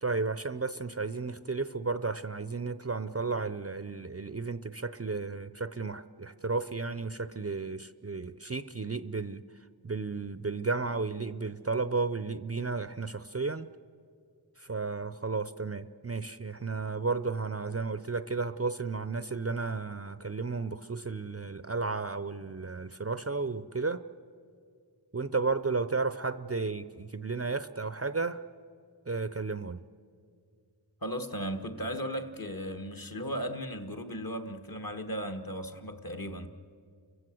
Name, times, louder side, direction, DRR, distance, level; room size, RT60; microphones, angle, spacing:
voice 1, 0.0-9.4 9.8-13.7 14.6-24.0 25.1-28.4 29.1-29.8, right 4 dB, 30° right, 0.5 m, -33 dB
voice 2, 31.0-36.5, equal, 45° left, 1.6 m, -36 dB
30.0 x 16.0 x 7.6 m
wide cardioid pair, 50°, 47 cm